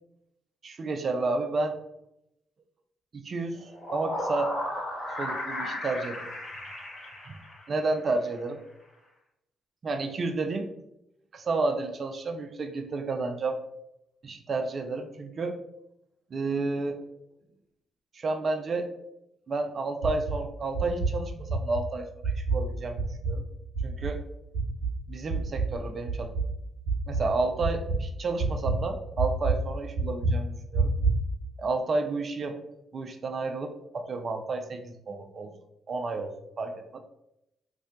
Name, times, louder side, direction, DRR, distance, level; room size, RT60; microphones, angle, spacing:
voice 1, 0.6-1.7 3.1-4.5 5.2-6.3 7.3-7.4 7.7-8.6 9.8-10.7 11.3-13.6 14.2-15.6 16.3-17.0 18.1-18.9 19.5-23.4 23.8-24.2 25.1-26.3 27.1-30.9 31.6-32.6 32.9-35.5 35.9-36.3 36.6-37.0, right 3 dB, 50° right, 6 dB, 0.4 m, -31 dB
sound 1, 3.5-8.0, left 1 dB, 45° left, 1.0 m, -35 dB
sound 2, 20.0-20.4 20.7-21.2 21.5-21.8 22.2-22.7 23.0-23.4 23.7-24.1 24.5-24.9 25.3-25.8 26.1-26.5 26.9-27.3 27.6-28.0 28.4-28.8 29.2-29.6 30.0-30.4 30.7-31.2, right 4 dB, 85° left, 1.0 m, -27 dB
2.6 x 2.1 x 2.6 m, 0.84 s
hypercardioid pair, 45°, 0 cm